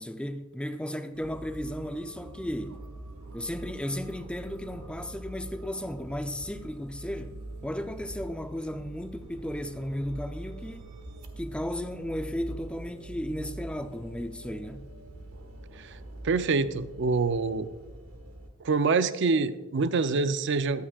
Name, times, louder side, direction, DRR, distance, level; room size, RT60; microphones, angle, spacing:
voice 1, 0.0-2.8 3.3-10.9 11.4-14.9, equal, 5° left, 0.5 m, -35 dB
sound 1, 1.1-18.5, right 1 dB, 75° right, 1.4 m, -44 dB
voice 2, 16.2-17.7 18.6-20.9, right 4 dB, 55° right, 0.5 m, -26 dB
22.0 x 8.7 x 2.4 m
head